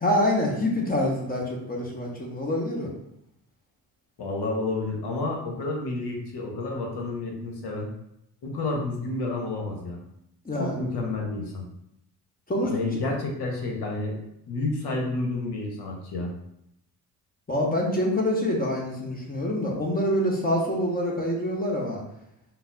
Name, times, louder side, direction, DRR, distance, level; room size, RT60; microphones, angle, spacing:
voice 1, 0.0-2.9 10.4-10.7 12.5-12.7 17.5-22.0, left 1 dB, 20° left, -1 dB, 1.0 m, -26 dB
voice 2, 4.2-7.9 8.4-10.0 10.6-11.6 12.6-14.2 14.5-16.3, left 2 dB, 55° left, 1 dB, 1.0 m, -30 dB
3.8 x 2.0 x 2.6 m, 0.80 s
hypercardioid pair, 55°, 48 cm